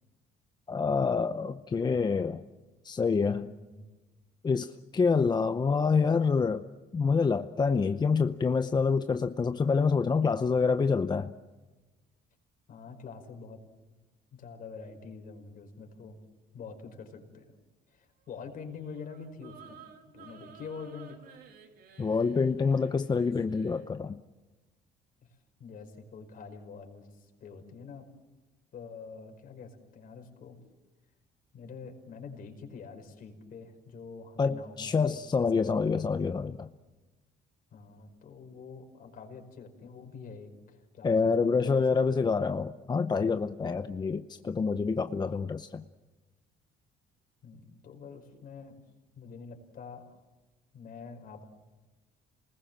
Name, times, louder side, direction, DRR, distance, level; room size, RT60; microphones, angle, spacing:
voice 1, 0.7-2.4 2.8-3.5 4.4-6.7 6.9-11.3 22.0-24.2 34.4-36.7 41.0-45.8, left 5 dB, 25° left, 9 dB, 0.8 m, -27 dB
voice 2, 3.4-3.8 12.7-13.6 14.3-16.2 16.5-17.4 17.9-21.2 25.2-28.1 28.7-30.6 31.5-36.0 37.7-41.9 47.4-48.8 49.2-50.2 50.7-51.4, left 5 dB, 55° left, 4 dB, 5.2 m, -46 dB
sound 1, 18.6-23.9, right 7 dB, 60° right, 2.9 m, -53 dB
28.5 x 20.5 x 7.4 m, 1.2 s
cardioid pair, 110°, 17 cm